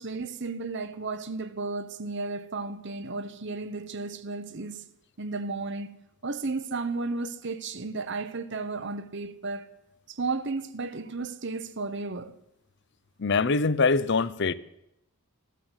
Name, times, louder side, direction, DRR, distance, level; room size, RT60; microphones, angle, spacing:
voice 1, 0.0-4.8 5.2-9.7 10.1-12.3, right 3 dB, 55° right, 1.1 m, -33 dB
voice 2, 13.2-14.5, left 4 dB, 50° left, 0.6 m, -23 dB
14.5 x 12.5 x 8.1 m
head